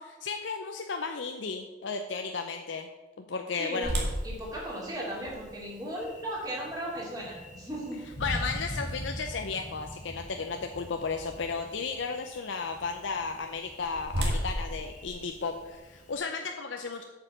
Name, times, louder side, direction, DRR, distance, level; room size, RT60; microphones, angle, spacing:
voice 1, 0.0-2.9 3.3-4.0 8.2-17.0, left 4 dB, 75° left, 5 dB, 0.6 m, -34 dB
voice 2, 3.6-3.9 4.2-8.3, right 1 dB, 20° right, -5 dB, 3.1 m, -36 dB
Thunder, 3.8-16.2, equal, 40° left, 1.3 m, -44 dB
sound 1, 3.8-9.8 10.3-10.4 11.0-11.3 13.3-16.0, equal, 60° right, 1.9 m, -36 dB
8.3 x 5.6 x 7.0 m, 1.2 s
head